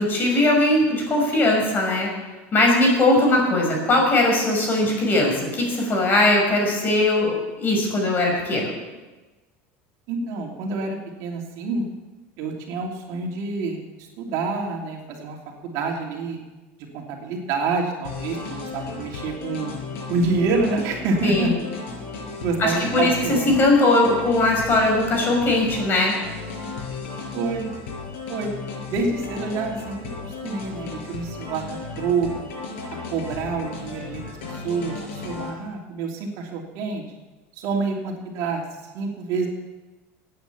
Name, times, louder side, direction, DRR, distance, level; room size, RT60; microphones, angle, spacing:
voice 1, 0.0-2.1 2.5-8.7 21.2-21.5 22.6-23.1 23.5-26.1, left 2 dB, 30° left, 1 dB, 5.7 m, -20 dB
voice 2, 10.1-11.8 12.4-15.4 15.6-16.4 16.9-19.7 20.1-21.7 22.4-23.6 27.3-27.7 28.3-28.5 28.9-32.5 33.1-37.0 37.5-38.6 38.9-39.5, right 4 dB, 60° right, 1 dB, 3.0 m, -27 dB
sound 1, 18.0-35.5, left 4 dB, 85° left, 5.4 m, -35 dB
16.5 x 9.3 x 7.2 m, 1.2 s
supercardioid pair, 125°, 6 cm